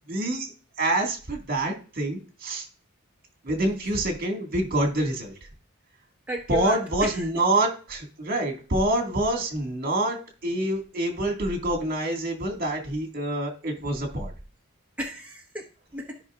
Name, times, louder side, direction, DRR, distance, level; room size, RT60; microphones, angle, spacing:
voice 1, 0.1-0.5 0.8-2.7 3.4-5.3 6.5-14.3, right 1 dB, 45° right, 2 dB, 2.0 m, -26 dB
voice 2, 6.3-7.3 15.0-16.2, equal, 5° right, -2 dB, 1.4 m, -34 dB
14.5 x 5.6 x 2.5 m, 0.37 s
head